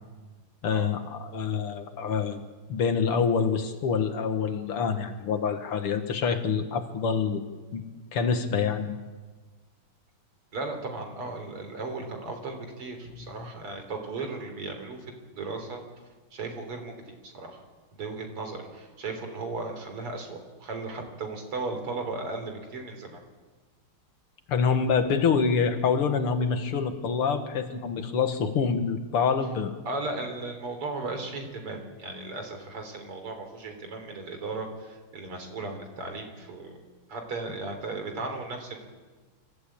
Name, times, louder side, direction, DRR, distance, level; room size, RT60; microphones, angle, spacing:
voice 1, 0.6-2.4 2.7-7.4 7.7-7.8 8.1-9.0 24.5-29.7, left 6 dB, 80° left, 7 dB, 2.5 m, -26 dB
voice 2, 10.5-15.1 15.3-15.8 16.3-17.6 17.9-23.2 29.9-36.8 37.1-38.9, right 3 dB, 85° right, 5 dB, 4.4 m, -36 dB
26.0 x 14.5 x 8.7 m, 1.3 s
omnidirectional pair, 2.4 m